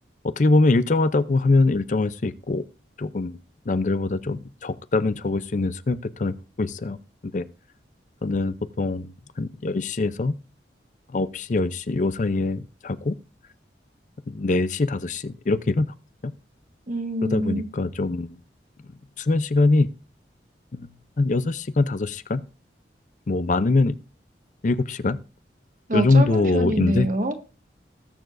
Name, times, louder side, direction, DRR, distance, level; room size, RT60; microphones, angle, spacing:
voice 1, 0.2-2.6 3.0-3.4 3.7-7.0 7.2-7.5 8.2-9.1 9.4-10.3 11.1-13.2 14.3-15.9 16.2-16.3 17.2-18.4 19.2-19.9 20.7-20.9 21.2-22.4 23.3-24.0 24.6-25.2 25.9-27.1, left 3 dB, 45° left, 14 dB, 0.5 m, -23 dB
voice 2, 16.9-17.7 25.9-27.4, right 1 dB, 45° right, 6 dB, 1.5 m, -26 dB
20.0 x 6.9 x 2.5 m, 0.32 s
head